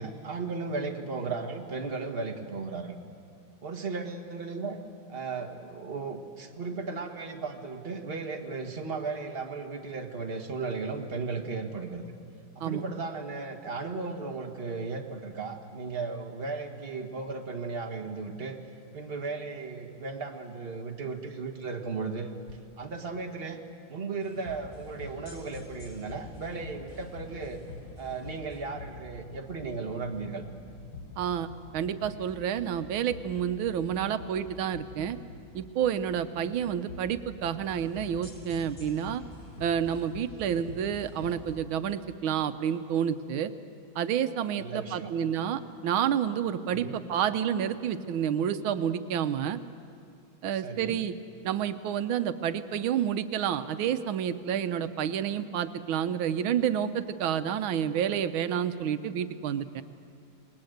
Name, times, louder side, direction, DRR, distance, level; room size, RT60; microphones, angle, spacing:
voice 1, 0.0-2.9 3.6-4.8 5.1-12.0 12.6-18.6 18.9-22.4 22.8-23.6 23.9-27.6 28.0-30.4 36.5-36.6 40.5-40.7 44.5-45.1 46.7-47.0 50.6-51.0, right 4 dB, 30° right, 3 dB, 1.8 m, -36 dB
sound 1, 24.2-41.5, left 2 dB, 45° left, 6.4 m, -46 dB
voice 2, 31.2-31.5 31.7-35.2 35.5-39.2 39.6-43.5 43.9-49.6 50.4-51.1 51.4-59.8, right 9 dB, 90° right, 11 dB, 1.6 m, -29 dB
28.0 x 20.5 x 7.9 m, 2.3 s
omnidirectional pair, 2.2 m